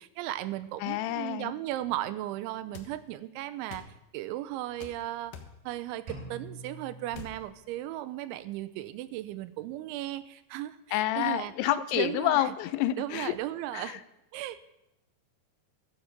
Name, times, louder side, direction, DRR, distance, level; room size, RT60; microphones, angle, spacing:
voice 1, 0.0-3.8 4.1-5.3 5.6-12.5 13.0-14.0 14.3-14.6, right 14 dB, 85° right, 13 dB, 3.1 m, -36 dB
voice 2, 0.8-1.5 10.9-13.3 13.7-14.0, left 13 dB, 85° left, 14 dB, 2.9 m, -28 dB
sound 1, 2.7-2.9 3.7-3.9 4.8-5.0 5.3-5.6 7.1-7.4, left 6 dB, 65° left, 2.3 m, -44 dB
sound 2, 6.1-8.0, right 1 dB, 55° right, 6.3 m, -46 dB
15.0 x 13.0 x 5.1 m, 0.87 s
omnidirectional pair, 5.3 m